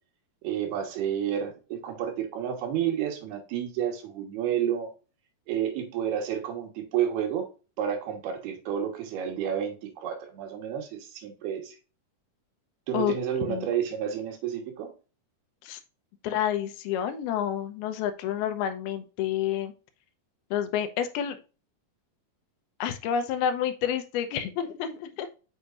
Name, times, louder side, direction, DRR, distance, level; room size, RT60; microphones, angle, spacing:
voice 1, 0.4-4.9 5.5-7.5 7.8-11.8 12.9-14.9, right 9 dB, 85° right, 4 dB, 3.3 m, -30 dB
voice 2, 16.2-19.7 20.5-21.4 22.8-25.4, left 9 dB, 85° left, 9 dB, 2.7 m, -29 dB
7.1 x 6.3 x 2.5 m, 0.34 s
omnidirectional pair, 4.4 m